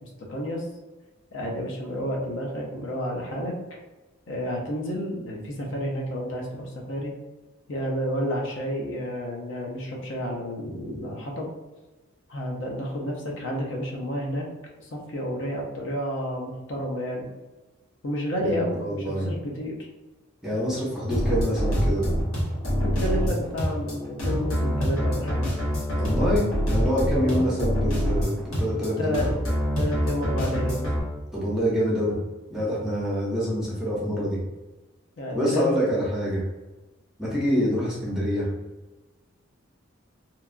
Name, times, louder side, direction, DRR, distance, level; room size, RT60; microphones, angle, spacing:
voice 1, 0.0-0.7 1.3-3.5 4.3-7.1 7.7-11.5 12.3-14.5 14.9-17.3 18.0-19.9 22.8-25.4 27.1-27.5 28.7-29.3 29.8-30.9 35.2-35.9, equal, 60° left, -1 dB, 0.5 m, -30 dB
voice 2, 18.4-19.3 20.4-22.0 26.0-29.2 31.3-32.2 32.5-34.4 35.3-36.4 37.2-38.5, equal, 5° right, -6 dB, 0.6 m, -26 dB
sound 1, 21.1-31.0, equal, 85° left, 1.0 m, -25 dB
2.8 x 2.3 x 2.4 m, 1.2 s
head